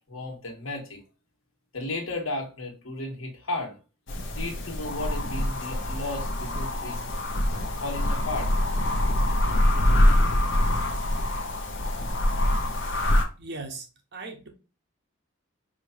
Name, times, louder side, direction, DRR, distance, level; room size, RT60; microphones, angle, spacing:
voice 1, 0.1-1.0 1.7-3.7 4.3-7.1 7.8-8.5, left 2 dB, 80° left, 1.7 m, -34 dB
sound 1, 4.1-13.2, left 1 dB, 60° left, 1.0 m, -24 dB
voice 2, 13.4-13.8 14.1-14.5, right 3 dB, 55° right, 1.1 m, -37 dB
5.0 x 3.2 x 2.7 m
head